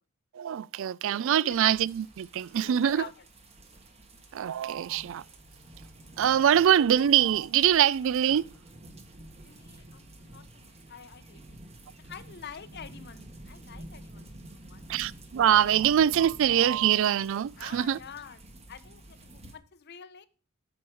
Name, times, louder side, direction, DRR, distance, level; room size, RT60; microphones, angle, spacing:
voice 1, 0.3-3.0 4.3-5.2 6.2-8.4 14.9-18.0, right 10 dB, 65° right, 0.3 m, -24 dB
voice 2, 1.4-1.8 2.6-3.2 9.3-11.6 12.0-14.8 17.6-20.3, left 7 dB, 50° left, 0.7 m, -47 dB
sound 1, 1.5-19.6, right 1 dB, 30° right, 1.5 m, -50 dB
8.7 x 6.2 x 4.6 m
head